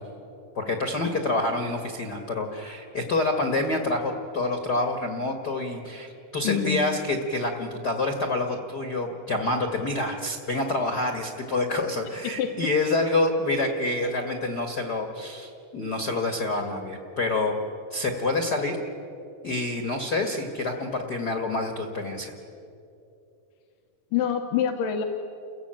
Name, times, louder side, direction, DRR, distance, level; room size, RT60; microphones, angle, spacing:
voice 1, 0.5-17.6 17.9-18.8 19.4-22.3, left 2 dB, 45° left, 4 dB, 1.4 m, -27 dB
voice 2, 6.4-6.9 12.4-12.5 24.1-25.0, left 8 dB, 85° left, 4 dB, 2.8 m, -25 dB
29.0 x 15.5 x 8.9 m, 2.7 s
omnidirectional pair, 3.8 m